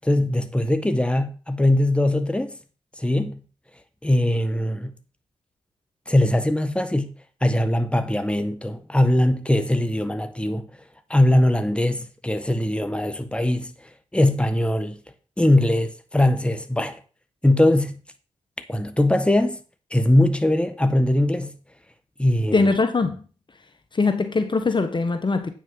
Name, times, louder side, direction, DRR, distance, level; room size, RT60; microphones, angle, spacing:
voice 1, 0.0-2.6 3.0-3.4 4.0-4.9 6.1-7.1 7.4-10.7 11.1-15.0 15.4-17.0 17.4-18.0 18.7-19.6 19.9-21.5 22.2-22.7, left 1 dB, 10° left, 1.5 m, -21 dB
voice 2, 22.5-23.2 23.9-25.5, left 3 dB, 40° left, 1.4 m, -21 dB
9.1 x 6.4 x 5.7 m
supercardioid pair, 40°, 12 cm